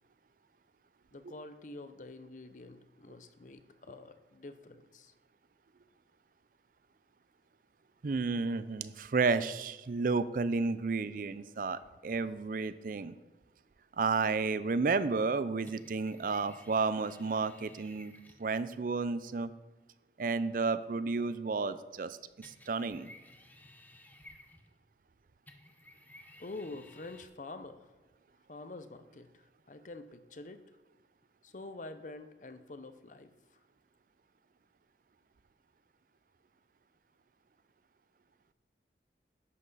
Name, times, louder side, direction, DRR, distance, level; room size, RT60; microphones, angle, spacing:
voice 1, 1.1-5.1 26.4-28.0 28.5-30.6 31.4-33.3, left 2 dB, 45° left, 10 dB, 0.6 m, -47 dB
voice 2, 8.0-13.1 14.0-18.1 18.4-19.5 20.2-22.2 22.4-23.1, right 4 dB, 50° right, 15 dB, 0.4 m, -32 dB
sound 1, 15.7-18.5 22.4-24.9 25.5-27.3, left 1 dB, 10° left, 0.7 m, -57 dB
11.0 x 7.9 x 4.0 m, 1.2 s
head